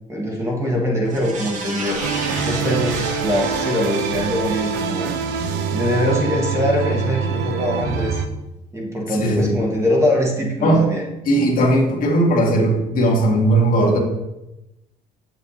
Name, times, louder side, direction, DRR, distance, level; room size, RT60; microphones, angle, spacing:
voice 1, 0.1-2.0 2.4-5.1 5.7-8.2 8.7-11.0, left 1 dB, 15° right, -2 dB, 1.6 m, -22 dB
sound 1, 1.0-5.6 6.0-6.1, right 3 dB, 50° right, 1.5 m, -33 dB
sound 2, 2.0-8.3, right 6 dB, 90° right, 0.6 m, -24 dB
voice 2, 9.1-9.6 10.6-10.8 11.2-14.0, right 1 dB, 55° left, -1 dB, 1.8 m, -17 dB
7.4 x 6.9 x 2.8 m, 0.93 s
cardioid pair, 110°, 17 cm